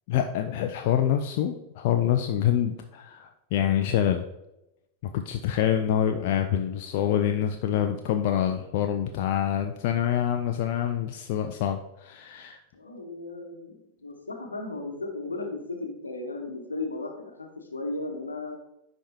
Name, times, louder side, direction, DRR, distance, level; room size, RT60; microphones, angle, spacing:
voice 1, 0.1-4.3 5.1-12.6, left 10 dB, 50° left, 5 dB, 0.4 m, -26 dB
voice 2, 12.7-18.6, left 2 dB, 80° left, 3 dB, 1.0 m, -35 dB
9.9 x 3.5 x 2.7 m, 0.88 s
figure-of-eight pair, 90°, 0 cm